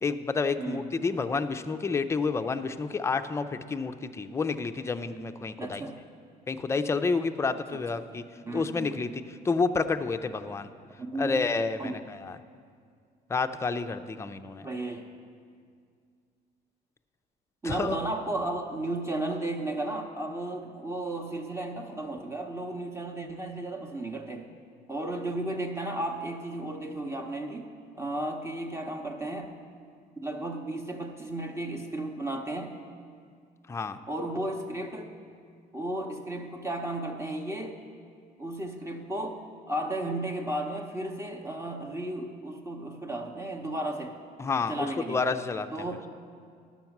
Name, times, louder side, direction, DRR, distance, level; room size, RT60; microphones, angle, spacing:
voice 1, 0.0-5.8 6.5-8.2 8.5-10.7 11.2-12.4 13.3-14.7 17.6-18.0 33.7-34.0 44.4-45.7, left 4 dB, 15° left, 9 dB, 0.4 m, -29 dB
voice 2, 0.6-0.9 5.6-6.0 7.9-8.0 8.5-9.0 11.0-11.4 11.8-12.0 14.6-15.1 17.6-24.5 24.9-29.6 30.2-32.7 34.1-35.1 35.7-37.8 38.4-44.2 44.7-45.2 45.7-46.1, right 1 dB, 15° right, 2 dB, 0.8 m, -34 dB
10.5 x 7.1 x 5.9 m, 2.2 s
cardioid pair, 110°, 17 cm